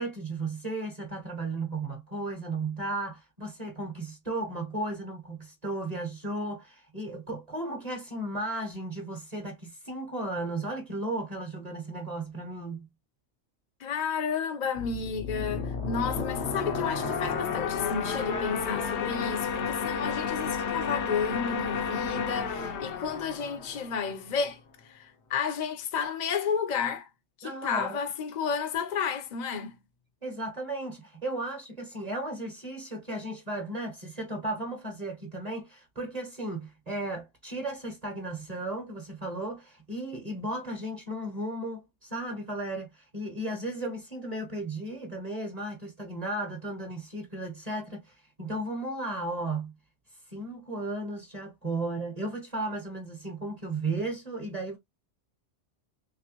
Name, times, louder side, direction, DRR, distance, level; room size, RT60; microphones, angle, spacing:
voice 1, 0.0-12.9 27.4-28.0 30.2-49.7 50.3-54.8, right 2 dB, 35° right, 1.1 m, -35 dB
voice 2, 13.8-24.6 24.8-27.1 27.4-29.8, left 6 dB, 40° left, 0.8 m, -32 dB
sound 1, 14.8-24.3, left 5 dB, 65° left, 1.0 m, -32 dB
3.4 x 3.1 x 3.0 m
omnidirectional pair, 1.3 m